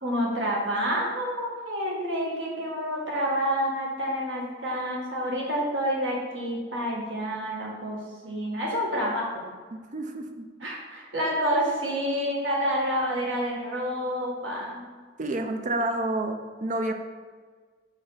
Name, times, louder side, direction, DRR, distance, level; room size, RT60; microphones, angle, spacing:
voice 1, 0.0-9.4 10.6-14.8, equal, 85° right, -2 dB, 1.8 m, -28 dB
voice 2, 9.7-10.5 15.2-16.9, right 1 dB, 40° right, 6 dB, 0.6 m, -29 dB
5.7 x 4.5 x 5.5 m, 1.5 s
head